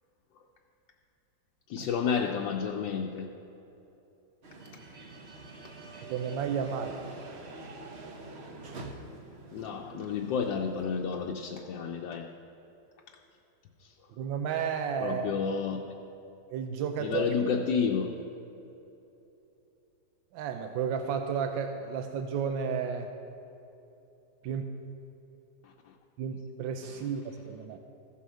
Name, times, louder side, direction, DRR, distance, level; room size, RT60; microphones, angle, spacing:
voice 1, 1.7-3.3 9.5-12.3 15.0-15.8 17.0-18.1 25.6-25.7, left 6 dB, 75° left, 1 dB, 1.3 m, -30 dB
sound 1, 4.4-11.5, right 3 dB, 45° right, 0.9 m, -46 dB
voice 2, 6.1-7.0 14.2-15.3 16.5-17.2 20.3-23.1 24.4-24.7 26.2-27.8, right 7 dB, 90° right, 6 dB, 1.3 m, -32 dB
14.5 x 5.6 x 6.2 m, 3.0 s
omnidirectional pair, 2.0 m